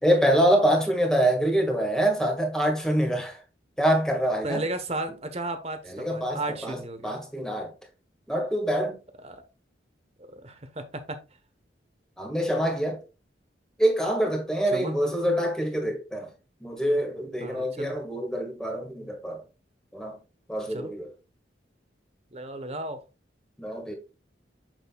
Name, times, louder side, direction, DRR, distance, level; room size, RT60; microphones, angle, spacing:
voice 1, 0.0-3.4 3.8-4.6 5.9-7.7 8.3-8.9 12.2-13.0 13.8-16.3 16.6-19.4 19.9-20.2 20.5-21.1 23.6-23.9, equal, 5° left, 1.8 m, -25 dB
voice 2, 4.4-7.2 9.2-9.4 10.3-11.2 14.7-15.0 17.4-17.9 20.7-20.9 22.3-23.0, right 2 dB, 35° right, 1.1 m, -34 dB
7.7 x 6.7 x 2.3 m
head